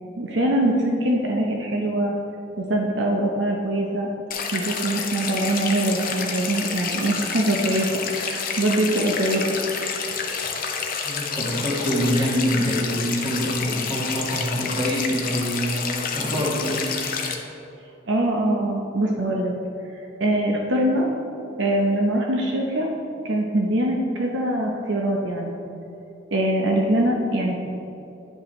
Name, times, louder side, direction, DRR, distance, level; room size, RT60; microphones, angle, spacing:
voice 1, 0.2-2.1 2.6-4.1 4.5-7.9 8.2-9.6 18.1-19.5 20.2-21.1 21.6-22.9 23.2-25.6 26.3-27.5, right 1 dB, 65° right, -1 dB, 0.7 m, -23 dB
sound 1, 4.3-17.4, left 5 dB, 45° left, 0.7 m, -29 dB
voice 2, 11.0-16.9, equal, 25° right, -5 dB, 1.6 m, -25 dB
10.0 x 5.3 x 3.1 m, 2.8 s
head